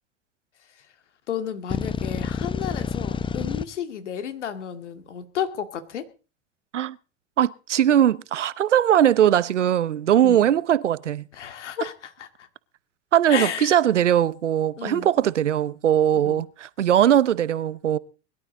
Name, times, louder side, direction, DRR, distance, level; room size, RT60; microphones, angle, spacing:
voice 1, 1.3-6.0 10.2-10.5 11.3-12.5 13.3-13.8 14.8-15.1 16.3-16.4, left 8 dB, 80° left, 2.3 m, -32 dB
sound 1, 1.7-3.6, left 5 dB, 15° left, 0.7 m, -28 dB
voice 2, 7.4-11.2 13.1-18.0, right 10 dB, 85° right, 0.8 m, -20 dB
21.5 x 12.0 x 4.0 m
hypercardioid pair, 85°, 35 cm